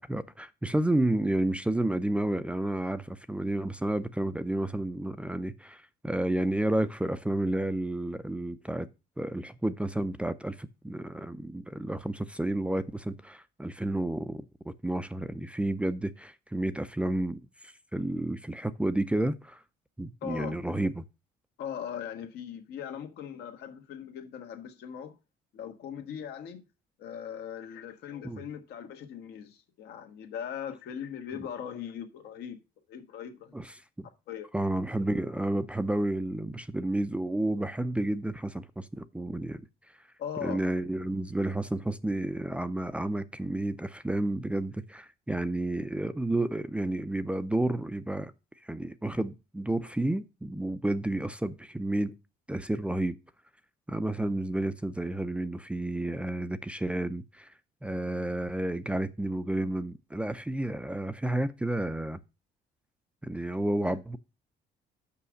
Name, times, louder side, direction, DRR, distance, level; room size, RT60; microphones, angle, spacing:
voice 1, 0.0-8.9 9.2-19.6 20.0-21.0 28.2-28.4 33.5-33.7 34.0-34.1 34.5-39.6 40.4-48.3 48.6-52.2 52.5-53.2 53.9-57.5 57.8-62.2 63.2-64.2, right 1 dB, 5° right, 0.5 m, -31 dB
voice 2, 20.2-20.6 21.6-25.2 25.5-26.7 27.0-32.6 32.9-33.6 34.3-34.5 40.2-40.6 63.9-64.0, left 8 dB, 75° left, 1.7 m, -39 dB
6.1 x 5.6 x 6.3 m
cardioid pair, 110°, 17 cm